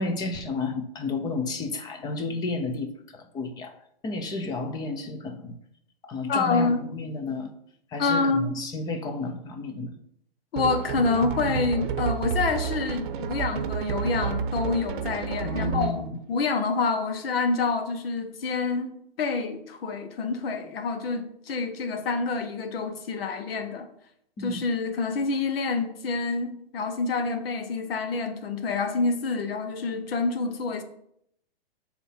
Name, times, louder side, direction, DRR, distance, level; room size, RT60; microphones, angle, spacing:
voice 1, 0.0-3.7 4.0-5.6 6.0-7.5 7.9-10.0 15.4-16.2 24.4-24.7, left 3 dB, 15° left, 0.7 m, -32 dB
voice 2, 6.3-6.8 8.0-8.6 10.5-18.9 19.2-23.9 24.4-30.8, left 4 dB, 70° left, 1.4 m, -27 dB
sound 1, 10.6-16.1, right 7 dB, 55° right, 0.8 m, -30 dB
7.8 x 4.2 x 5.8 m
hypercardioid pair, 150°, 30 cm